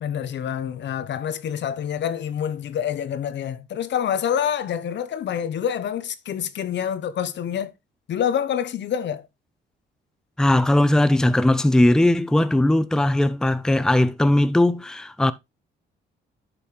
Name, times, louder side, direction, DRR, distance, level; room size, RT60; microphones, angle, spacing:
voice 1, 0.0-7.7 8.1-9.3, left 9 dB, 65° left, 1.0 m, -27 dB
voice 2, 10.4-15.3, left 1 dB, 5° left, 0.6 m, -19 dB
11.0 x 5.8 x 3.3 m
cardioid pair, 90°, 20 cm